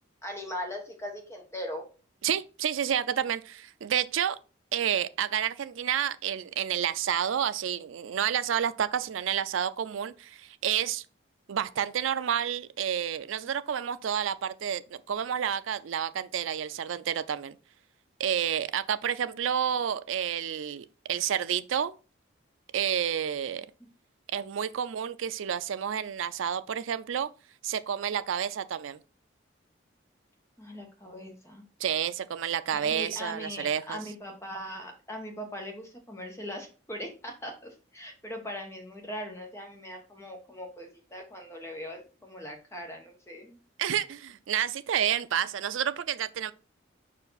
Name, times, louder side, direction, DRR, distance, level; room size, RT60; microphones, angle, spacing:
voice 1, 0.2-1.8 30.6-31.6 32.7-43.6, equal, 15° left, 1.1 m, -40 dB
voice 2, 2.2-4.4 4.7-11.0 11.5-17.6 18.2-22.0 22.7-23.7 24.3-27.3 27.6-29.0 31.8-34.0 43.8-46.5, right 9 dB, 80° right, 0.4 m, -30 dB
5.2 x 4.6 x 4.0 m
head